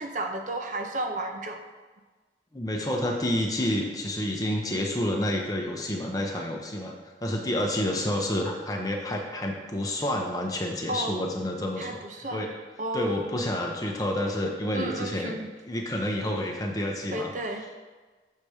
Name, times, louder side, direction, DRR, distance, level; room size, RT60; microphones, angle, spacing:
voice 1, 0.0-1.6 10.9-11.2 11.8-12.5 12.8-13.6 14.7-15.5 17.1-17.8, right 1 dB, 45° right, 4 dB, 0.5 m, -33 dB
voice 2, 2.5-6.9 7.2-12.0 12.3-12.5 12.9-15.3 15.6-17.3, left 1 dB, 20° left, 1 dB, 0.8 m, -29 dB
6.5 x 4.2 x 4.9 m, 1.3 s
head